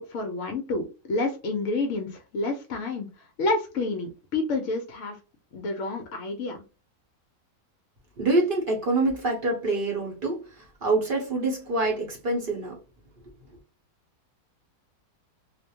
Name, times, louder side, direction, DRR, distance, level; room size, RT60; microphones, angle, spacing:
voice 1, 0.0-3.1 3.4-5.2 5.5-6.6, left 3 dB, 70° left, 0.8 m, -29 dB
voice 2, 8.2-10.4 10.8-12.8, right 2 dB, 45° right, 0.7 m, -25 dB
2.5 x 2.1 x 2.7 m
omnidirectional pair, 1.6 m